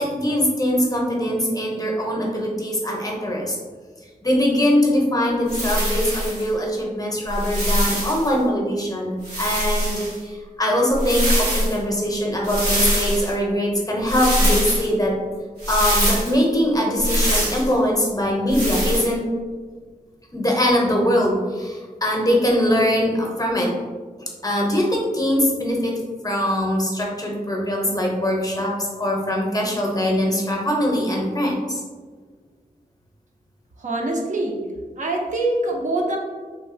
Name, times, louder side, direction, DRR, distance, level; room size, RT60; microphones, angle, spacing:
voice 1, 0.0-3.6 4.2-15.2 15.7-19.3 20.3-23.7 24.4-31.8, equal, 25° left, -1 dB, 0.6 m, -22 dB
sound 1, 5.5-6.4 7.3-8.3 9.2-10.2 10.9-11.8 12.4-13.3 14.1-14.9 15.6-16.3 17.0-17.7 18.5-19.1, equal, 85° right, 1.2 m, -23 dB
voice 2, 33.8-36.2, right 2 dB, 50° right, 0 dB, 0.5 m, -24 dB
3.1 x 2.3 x 2.5 m, 1.5 s
cardioid pair, 60°, 16 cm